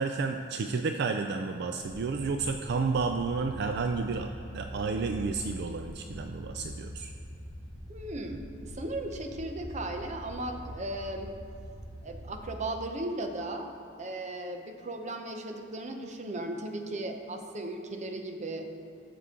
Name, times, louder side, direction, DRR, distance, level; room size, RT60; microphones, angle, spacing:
voice 1, 0.0-7.1, right 4 dB, 60° right, 6 dB, 0.4 m, -31 dB
sound 1, 1.8-12.4, equal, 90° right, 1.6 m, -43 dB
voice 2, 7.9-11.3 12.0-18.7, right 1 dB, 40° right, 5 dB, 0.7 m, -36 dB
13.5 x 6.8 x 3.7 m, 2.6 s
head